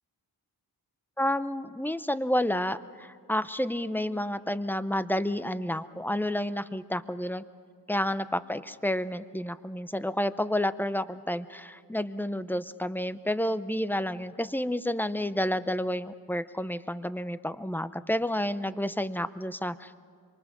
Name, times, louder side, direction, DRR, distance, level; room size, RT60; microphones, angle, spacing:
voice 1, 1.2-7.4 7.9-19.9, left 1 dB, 5° left, 13 dB, 0.6 m, -30 dB
26.5 x 23.5 x 6.0 m, 2.1 s
wide cardioid pair, 85°, 39 cm